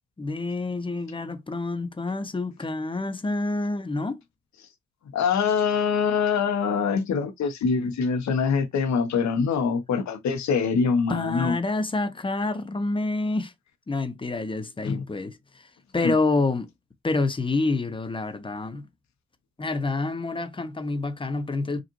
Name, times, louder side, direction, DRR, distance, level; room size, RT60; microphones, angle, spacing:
voice 1, 0.2-4.2 11.1-13.5 13.9-16.7 17.0-18.9 19.6-21.8, left 3 dB, 15° left, 0.8 m, -28 dB
voice 2, 5.1-11.5 14.8-15.0 16.0-16.1, left 5 dB, 65° left, 1.1 m, -24 dB
5.1 x 2.5 x 3.1 m
cardioid pair, 90°, 30 cm